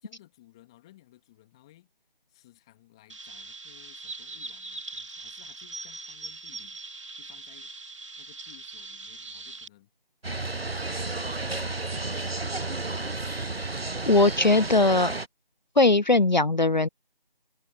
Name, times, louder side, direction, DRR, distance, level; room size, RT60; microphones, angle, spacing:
voice 1, 0.0-1.9 2.3-6.8 7.1-7.7 8.2-9.9 11.1-12.9, left 15 dB, 5° left, 1.8 m, -58 dB
Chirp tweet, 3.1-9.7, right 3 dB, 30° right, 2.3 m, -41 dB
sound 1, 10.2-15.3, right 2 dB, 85° right, 1.2 m, -32 dB
voice 2, 14.1-15.1 15.8-16.9, left 2 dB, 50° left, 0.7 m, -20 dB
figure-of-eight pair, 165°, 29 cm